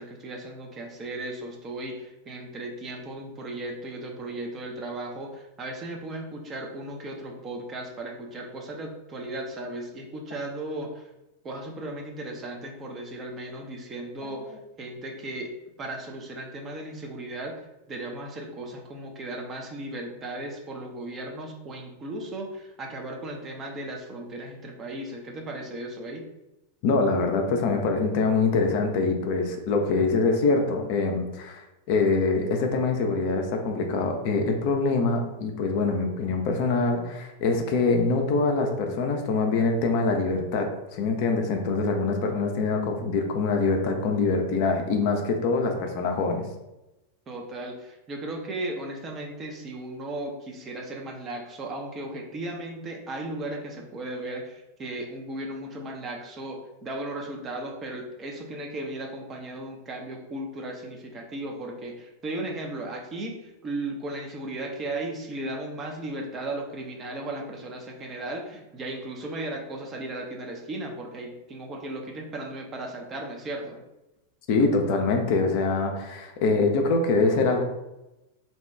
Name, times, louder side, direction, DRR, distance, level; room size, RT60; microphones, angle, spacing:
voice 1, 0.0-11.1 11.4-15.5 15.8-17.6 17.9-26.3 47.3-73.8, right 1 dB, 25° right, 1 dB, 0.6 m, -36 dB
voice 2, 26.8-46.4 74.5-77.6, left 3 dB, 45° left, 3 dB, 0.4 m, -24 dB
2.7 x 2.2 x 3.3 m, 0.96 s
figure-of-eight pair, 90°, 0 cm